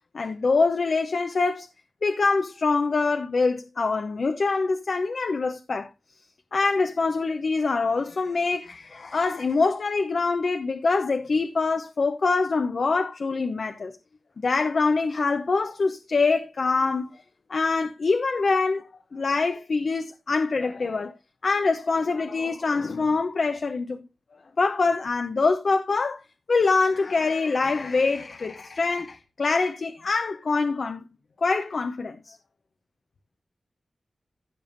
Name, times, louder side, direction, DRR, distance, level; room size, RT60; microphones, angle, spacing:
voice 1, 0.1-1.7 2.0-5.9 6.5-13.9 14.4-17.2 17.5-21.1 21.4-24.0 24.6-26.2 26.5-31.0 31.4-32.4, left 4 dB, 55° left, 0.8 m, -24 dB
15.5 x 6.9 x 2.6 m
wide cardioid pair, 130°, 0 cm